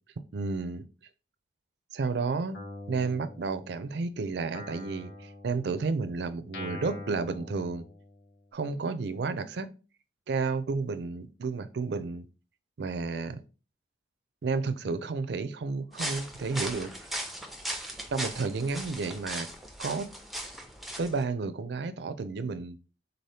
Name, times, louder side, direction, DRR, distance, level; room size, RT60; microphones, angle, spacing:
voice 1, 0.3-0.8 1.9-2.6 2.9-7.8 8.5-9.7 10.3-12.3 12.8-13.4 14.4-16.9 18.1-19.5 19.8-20.1 21.0-22.8, right 4 dB, 65° right, 0.4 m, -31 dB
Guitar, 2.5-4.0 4.5-8.4, left 2 dB, 70° left, 0.8 m, -44 dB
sound 1, 15.9-21.2, right 1 dB, ahead, 0.4 m, -38 dB
4.0 x 2.7 x 3.3 m
head